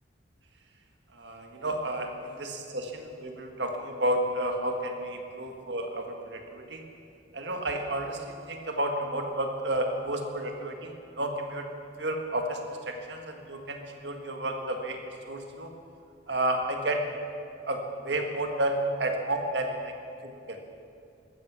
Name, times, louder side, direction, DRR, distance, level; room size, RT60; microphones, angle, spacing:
voice 1, 1.1-6.8 7.3-11.7 12.0-12.6 12.9-15.7 16.3-17.1 17.7-19.7 20.2-20.6, right 1 dB, 65° right, 3 dB, 1.8 m, -31 dB
15.5 x 14.0 x 6.2 m, 2.5 s
head